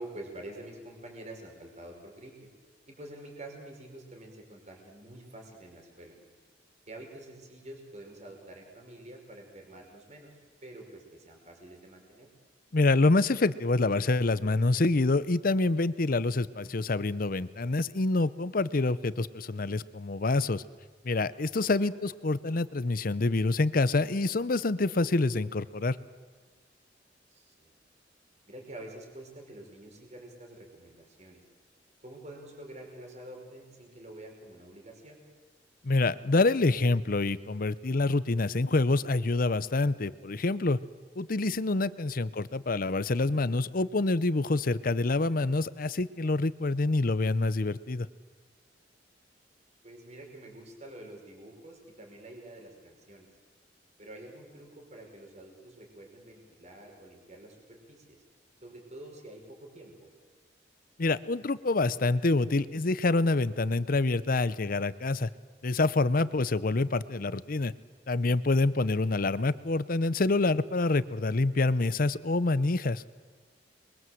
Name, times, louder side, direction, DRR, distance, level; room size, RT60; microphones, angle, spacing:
voice 1, 0.0-2.5 2.9-6.2 6.9-12.3 21.6-21.9 27.3-27.7 28.5-31.4 32.0-35.2 42.2-42.5 49.8-53.3 54.0-58.2 58.6-60.1 69.0-69.1, right 1 dB, 40° right, 1 dB, 5.1 m, -47 dB
voice 2, 12.7-20.6 21.0-26.0 35.8-40.8 41.2-48.1 61.0-65.3 65.6-67.7 68.1-73.0, left 2 dB, 50° left, 16 dB, 0.7 m, -26 dB
28.0 x 22.5 x 7.8 m, 1.5 s
head